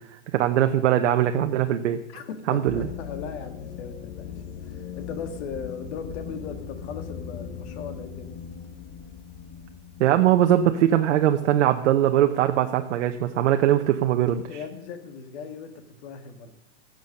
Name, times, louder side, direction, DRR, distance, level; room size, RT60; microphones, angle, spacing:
voice 1, 0.3-2.0 2.5-2.9 10.0-14.4, right 11 dB, 80° right, 6 dB, 0.9 m, -21 dB
voice 2, 2.1-4.3 4.6-8.3 14.5-16.5, left 6 dB, 70° left, 9 dB, 1.9 m, -38 dB
sound 1, 2.6-12.0, left 7 dB, 55° left, 1.2 m, -39 dB
14.5 x 7.8 x 6.5 m, 0.82 s
supercardioid pair, 120°, 35 cm